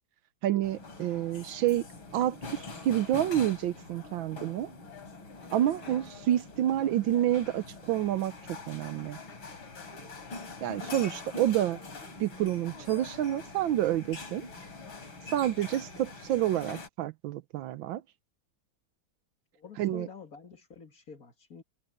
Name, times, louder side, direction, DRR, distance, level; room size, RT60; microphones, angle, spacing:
voice 1, 0.4-1.9 2.1-4.7 5.5-9.2 10.6-11.8 12.2-14.5 15.3-18.0 19.8-20.1, right 12 dB, 75° right, 1.4 m, -29 dB
sound 1, 0.6-16.9, left 3 dB, 80° left, 5.2 m, -44 dB
voice 2, 19.5-21.6, left 6 dB, 45° left, 2.7 m, -48 dB
omnidirectional pair, 2.2 m